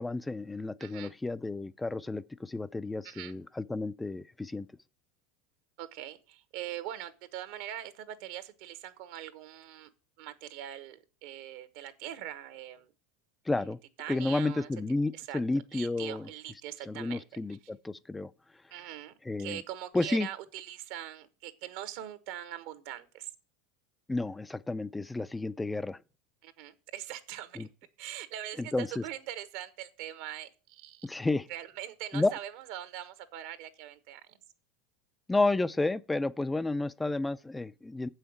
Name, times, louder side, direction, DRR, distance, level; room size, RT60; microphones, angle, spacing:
voice 1, 0.0-4.7 13.5-13.8 14.1-16.3 16.9-18.3 19.2-19.6 19.9-20.3 24.1-26.0 27.6-27.7 28.6-29.0 31.0-31.5 32.1-32.3 35.3-38.1, left 2 dB, 10° left, 0.5 m, -31 dB
voice 2, 0.8-1.1 3.0-3.4 5.8-9.9 10.2-12.9 13.6-13.7 14.0-14.7 15.1-15.4 15.7-17.2 18.7-23.3 26.4-27.7 28.0-31.1 31.5-34.2, right 12 dB, 65° right, 1.2 m, -42 dB
7.8 x 5.7 x 7.3 m
hypercardioid pair, 95°, 0 cm